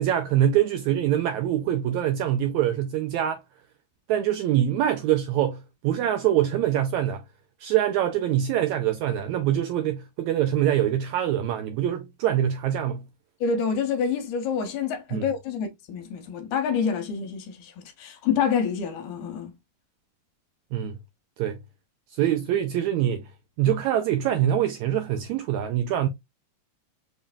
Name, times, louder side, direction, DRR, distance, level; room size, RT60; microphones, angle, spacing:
voice 1, 0.0-3.4 4.1-7.2 7.6-13.0 15.1-15.3 20.7-21.0 21.4-21.6 22.1-23.2 23.6-26.1, right 11 dB, 80° right, 1.7 m, -24 dB
voice 2, 13.4-19.5, left 6 dB, 75° left, 2.0 m, -27 dB
5.3 x 3.1 x 2.2 m
omnidirectional pair, 3.8 m